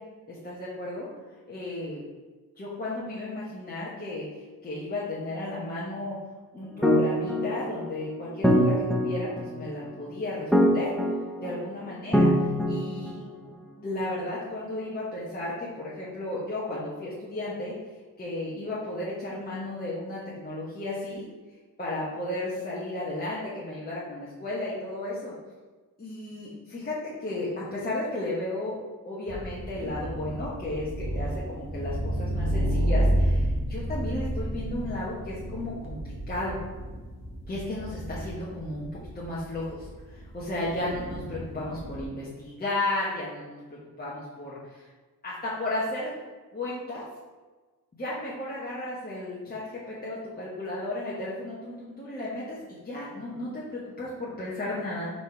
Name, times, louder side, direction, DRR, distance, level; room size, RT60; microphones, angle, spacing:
voice 1, 0.3-1.1 1.5-2.0 2.6-6.2 6.5-8.7 9.0-10.9 11.4-12.3 12.7-13.1 13.8-17.7 18.2-21.3 21.8-25.3 26.0-28.8 29.0-36.6 37.5-38.9 39.1-44.9 45.2-46.1 46.5-47.1 48.0-55.2, left 1 dB, 25° left, -8 dB, 1.2 m, -34 dB
sound 1, 6.8-13.5, equal, ahead, 0.7 m, -24 dB
sound 2, 29.3-42.1, right 1 dB, 35° right, 1.4 m, -31 dB
5.1 x 4.3 x 4.9 m, 1.3 s
wide cardioid pair, 145°, 37 cm